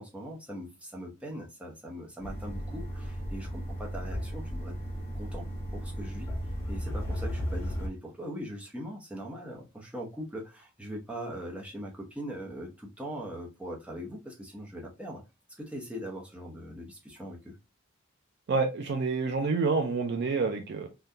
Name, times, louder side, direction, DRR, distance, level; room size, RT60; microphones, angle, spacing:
voice 1, 0.0-4.7 5.1-5.5 5.7-6.3 6.7-15.2 15.6-17.6, equal, 5° right, -2 dB, 0.8 m, -41 dB
sound 1, 2.2-7.9, equal, 10° left, 1.0 m, -35 dB
voice 2, 18.5-20.9, right 4 dB, 50° right, 5 dB, 0.4 m, -28 dB
3.6 x 2.2 x 2.6 m, 0.26 s
head